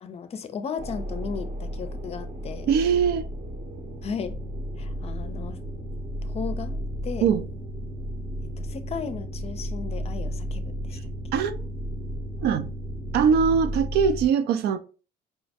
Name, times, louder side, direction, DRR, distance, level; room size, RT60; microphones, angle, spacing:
voice 1, 0.0-2.7 4.0-4.4 4.8-5.6 6.2-7.3 8.6-11.0, left 6 dB, 35° left, 0.5 m, -35 dB
sound 1, 0.8-14.3, equal, 40° right, 0.7 m, -33 dB
voice 2, 2.7-3.3 7.2-7.4 11.3-11.6 12.4-12.7 13.1-14.8, right 6 dB, 75° right, 0.5 m, -22 dB
4.8 x 2.1 x 2.7 m
cardioid pair, 110°, 17 cm